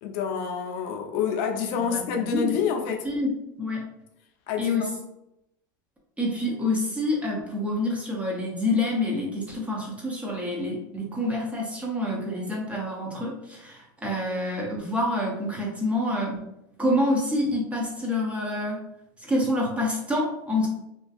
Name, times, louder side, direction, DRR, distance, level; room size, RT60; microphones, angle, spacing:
voice 1, 0.0-3.1 4.5-4.9, left 7 dB, 55° left, 0.5 m, -28 dB
voice 2, 1.8-2.6 3.0-3.3 3.6-3.8 4.6-4.9 6.2-16.4 16.8-18.8 19.2-20.7, left 1 dB, 10° right, 0.6 m, -27 dB
2.5 x 2.3 x 2.3 m
hypercardioid pair, 105°, 11 cm